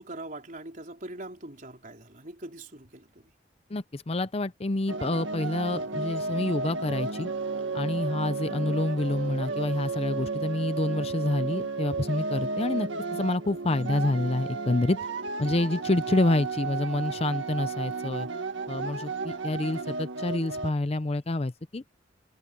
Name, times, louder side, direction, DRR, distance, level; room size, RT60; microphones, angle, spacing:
voice 1, 0.0-3.3, right 2 dB, 45° right, 4.2 m, -42 dB
voice 2, 3.7-7.3 7.7-15.0 15.4-18.3 18.7-21.8, left 2 dB, 30° left, 0.6 m, -28 dB
sound 1, 4.9-20.7, right 4 dB, 75° right, 1.9 m, -33 dB
head